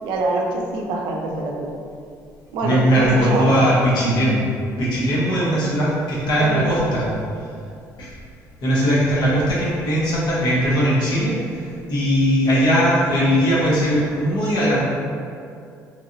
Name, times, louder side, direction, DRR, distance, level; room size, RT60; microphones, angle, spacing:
voice 1, 0.0-1.7 2.5-3.5 6.3-6.8, right 2 dB, 70° right, 0 dB, 0.4 m, -25 dB
voice 2, 2.6-4.4 4.8-7.1 8.0-8.1 8.6-14.8, equal, 60° left, -7 dB, 1.2 m, -19 dB
3.2 x 2.5 x 2.8 m, 2.4 s
hypercardioid pair, 55°, 8 cm